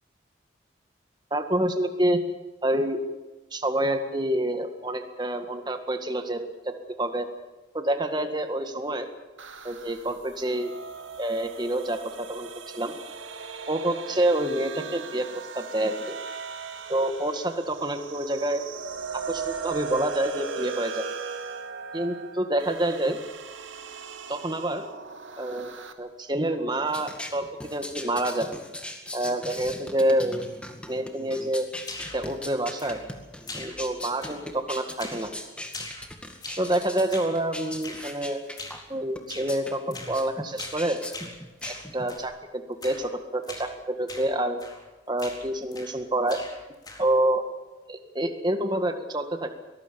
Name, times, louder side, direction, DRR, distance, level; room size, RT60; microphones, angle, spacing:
voice 1, 1.3-2.2 2.6-3.0 3.5-7.3 7.7-9.1 9.6-10.7 11.2-13.0 13.7-15.3 15.5-16.2 16.9-18.6 19.1-21.1 21.9-23.2 24.3-24.8 25.4-27.4 27.7-28.5 29.1-30.4 30.9-31.7 32.1-33.0 33.5-35.3 36.6-38.4 38.9-41.0 41.7-44.6 45.1-46.4 47.0-47.4 47.9-49.5, right 1 dB, 25° right, 6 dB, 1.9 m, -27 dB
sound 1, 9.4-25.9, right 5 dB, 90° right, 2.1 m, -38 dB
sound 2, 26.9-42.2, left 1 dB, 5° left, 2.0 m, -40 dB
sound 3, 31.8-32.3 32.8-33.2 33.5-33.9 34.2-34.6 35.0-35.3 35.7-36.7 37.1-37.4 37.8-38.1 38.6-38.9 39.3-39.5 39.9-40.2 40.6-40.8 41.1-42.3 42.8-43.1 43.4-43.7 44.1-44.3 44.6-44.9 45.2-46.0 46.3-47.2, left 2 dB, 20° left, 4.1 m, -41 dB
23.5 x 19.0 x 7.0 m, 1.1 s
head